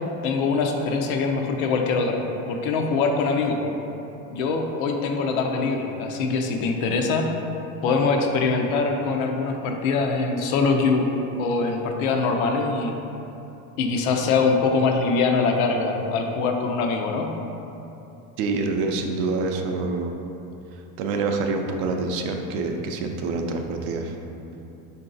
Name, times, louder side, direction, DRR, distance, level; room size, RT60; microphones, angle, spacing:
voice 1, 0.2-2.2 2.5-3.6 4.3-7.3 7.8-11.1 11.4-12.9 13.8-17.3, left 4 dB, 90° left, 3 dB, 0.6 m, -23 dB
voice 2, 18.4-20.1 21.0-24.2, right 3 dB, 70° right, 4 dB, 0.5 m, -26 dB
3.7 x 2.7 x 3.8 m, 3.0 s
cardioid pair, 135°, 40 cm